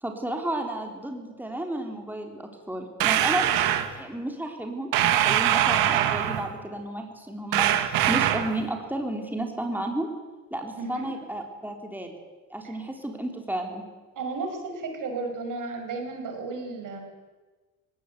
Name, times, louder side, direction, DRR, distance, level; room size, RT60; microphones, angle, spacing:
voice 1, 0.0-3.5 3.9-10.1 10.5-12.2 12.5-13.8, right 1 dB, 5° right, 3 dB, 3.8 m, -32 dB
sound 1, 3.0-3.9 4.9-6.5 7.5-8.6, right 12 dB, 85° right, 1.7 m, -23 dB
voice 2, 10.8-11.1 12.6-12.8 14.2-17.0, right 3 dB, 70° right, 4 dB, 5.6 m, -33 dB
19.5 x 17.5 x 8.3 m, 1.3 s
supercardioid pair, 70°, 33 cm